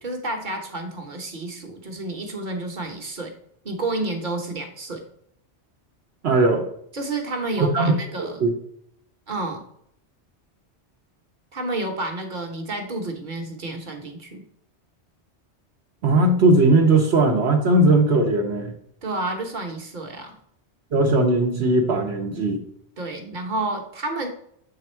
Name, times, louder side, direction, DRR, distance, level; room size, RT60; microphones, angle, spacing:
voice 1, 0.0-3.3 3.6-5.0 6.9-8.5 9.3-9.6 11.5-14.4 19.0-20.4 23.0-24.3, right 2 dB, 45° right, 3 dB, 1.1 m, -30 dB
voice 2, 6.2-6.6 7.6-8.5 16.0-18.7 20.9-22.6, right 2 dB, 70° right, 1 dB, 1.0 m, -19 dB
7.6 x 3.5 x 4.4 m, 0.69 s
omnidirectional pair, 1.2 m